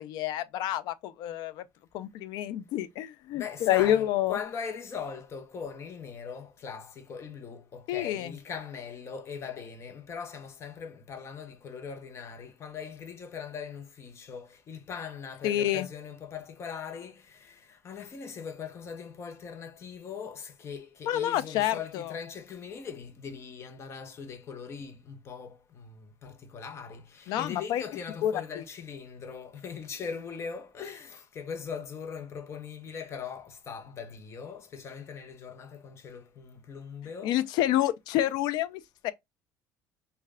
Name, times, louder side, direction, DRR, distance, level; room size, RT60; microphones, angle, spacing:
voice 1, 0.0-1.7 1.9-4.4 7.9-8.3 15.4-15.9 21.1-22.1 27.3-27.8 28.2-28.6 37.2-39.1, left 12 dB, 70° left, 0.4 m, -28 dB
voice 2, 3.3-37.3, left 6 dB, 40° left, 0.7 m, -40 dB
3.2 x 2.2 x 3.4 m
cardioid pair, 125°, 7 cm